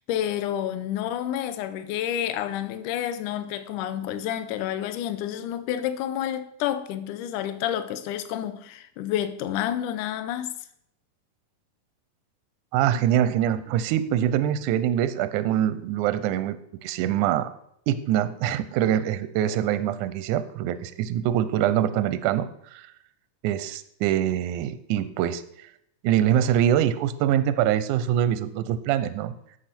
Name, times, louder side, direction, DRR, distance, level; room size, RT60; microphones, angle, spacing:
voice 1, 0.0-10.5, left 11 dB, 75° left, 2.1 m, -29 dB
voice 2, 12.7-17.5 17.9-22.9 23.4-25.4 26.0-29.4, right 11 dB, 80° right, 2.0 m, -24 dB
11.5 x 7.7 x 4.4 m
omnidirectional pair, 3.9 m